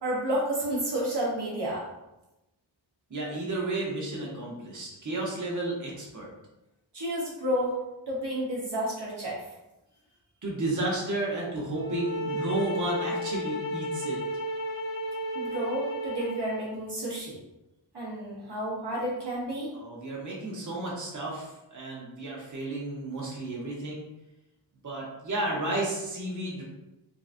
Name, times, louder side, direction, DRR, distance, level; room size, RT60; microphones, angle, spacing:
voice 1, 0.0-1.8 6.9-7.8 8.1-9.4 15.3-17.4 17.9-19.7, right 1 dB, 60° right, -5 dB, 1.0 m, -31 dB
voice 2, 3.1-6.3 10.4-14.2 19.7-24.1 24.8-26.6, right 2 dB, 40° right, -4 dB, 1.0 m, -32 dB
sound 1, 11.7-16.7, equal, 75° left, 0.9 m, -33 dB
3.8 x 2.4 x 2.5 m, 0.95 s
wide cardioid pair, 55°, 46 cm